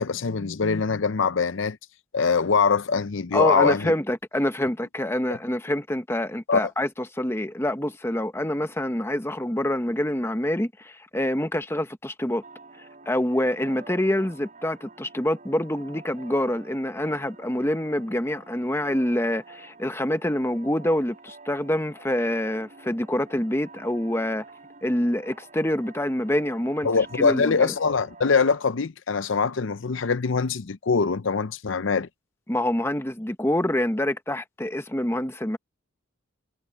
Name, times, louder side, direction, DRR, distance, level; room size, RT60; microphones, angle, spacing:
voice 1, 0.0-1.8 2.1-3.9 6.5-6.7 26.8-32.1, left 5 dB, 65° left, 0.6 m, -23 dB
voice 2, 3.3-12.4 13.1-24.4 24.8-26.9 27.2-27.7 32.5-35.6, left 1 dB, 10° left, 1.0 m, -26 dB
sound 1, 12.4-28.6, right 3 dB, 40° right, 6.2 m, -48 dB
head